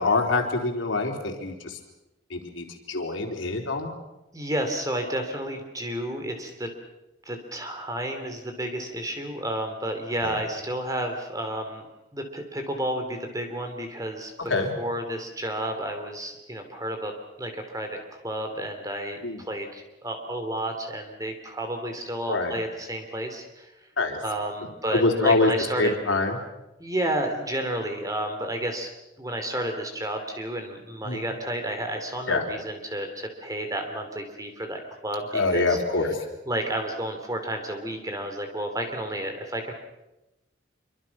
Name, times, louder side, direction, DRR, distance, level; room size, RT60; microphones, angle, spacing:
voice 1, 0.0-1.8 2.3-3.9 10.2-10.4 14.4-14.7 19.2-19.4 22.3-22.5 24.0-24.2 24.9-25.5 25.8-26.4 31.0-31.2 32.3-32.5 35.3-36.3, left 3 dB, 85° left, 2 dB, 3.8 m, -25 dB
voice 2, 4.3-6.7 7.3-11.9 12.1-14.5 14.8-17.1 17.4-23.7 24.2-25.9 26.8-28.9 29.2-35.8 36.5-39.7, right 1 dB, 20° right, 5 dB, 3.1 m, -31 dB
27.0 x 24.5 x 6.0 m, 0.97 s
head